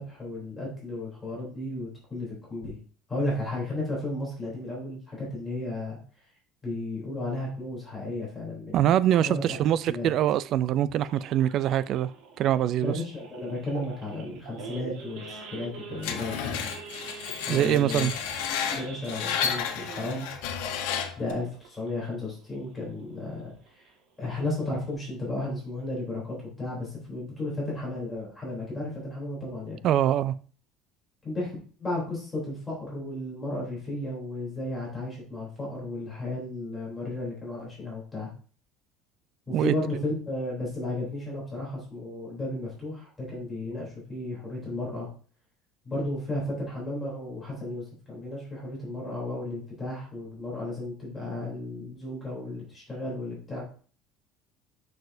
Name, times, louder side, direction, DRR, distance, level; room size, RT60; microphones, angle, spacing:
voice 1, 0.0-2.8 3.1-6.0 6.6-9.6 9.9-10.1 12.8-16.3 17.5-18.1 18.7-20.3 21.2-23.9 24.2-29.8 31.2-38.3 39.5-45.1 45.8-53.6, left 2 dB, 10° left, 3.3 m, -34 dB
voice 2, 8.7-12.1 12.4-12.9 17.5-18.1 29.8-30.3 39.5-39.7, right 11 dB, 45° right, 0.3 m, -24 dB
Idling / Accelerating revving vroom / Sawing, 11.0-22.1 22.5-22.7 23.0-23.1 23.5-23.8 24.3-24.4 24.6-24.9, right 4 dB, 65° right, 1.6 m, -44 dB
Screech, 16.0-21.3, left 8 dB, 85° left, 1.0 m, -32 dB
6.4 x 6.3 x 2.7 m
cardioid pair, 160°, 0 cm